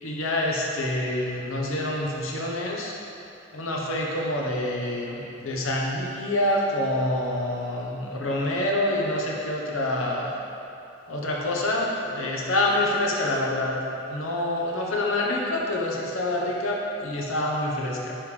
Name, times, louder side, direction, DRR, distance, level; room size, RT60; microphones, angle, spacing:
voice 1, 0.0-2.9 3.5-10.3 11.1-18.1, left 1 dB, 85° left, -2 dB, 1.0 m, -27 dB
10.0 x 3.5 x 3.3 m, 2.7 s
head